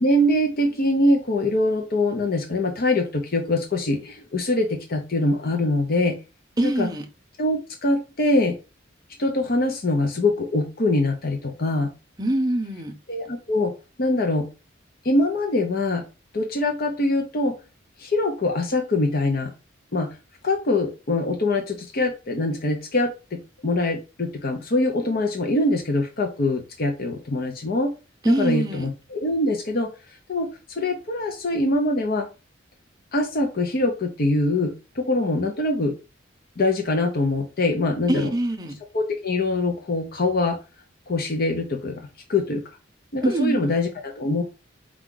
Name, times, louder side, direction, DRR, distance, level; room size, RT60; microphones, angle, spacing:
voice 1, 0.0-6.2 6.6-6.9 7.4-8.5 9.2-11.9 13.1-13.7 14.0-14.5 15.0-16.0 16.3-17.5 18.0-19.5 19.9-20.1 20.4-27.9 28.2-29.9 30.3-32.3 33.1-36.0 36.6-38.3 38.9-40.6 41.1-41.9 42.3-42.6 43.1-44.4, left 2 dB, 50° left, 0.7 m, -23 dB
voice 2, 6.6-7.1 12.2-12.9 28.2-28.9 38.1-38.8 43.2-43.8, right 1 dB, 20° right, 0.7 m, -24 dB
4.6 x 2.4 x 3.8 m
head